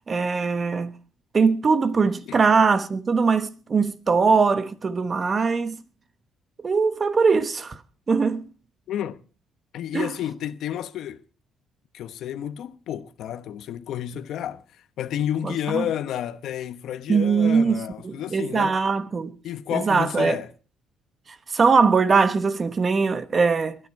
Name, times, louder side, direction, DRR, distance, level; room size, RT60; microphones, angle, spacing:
voice 1, 0.1-0.9 1.3-5.8 6.6-7.8 8.1-8.5 9.9-10.1 15.4-15.8 17.1-19.3 19.7-20.4 21.5-23.8, right 5 dB, 30° right, 1.2 m, -21 dB
voice 2, 8.9-9.2 9.7-11.2 11.9-14.6 15.0-18.8 19.4-20.5, left 10 dB, 70° left, 1.0 m, -30 dB
21.5 x 10.5 x 4.7 m
cardioid pair, 120°, 0 cm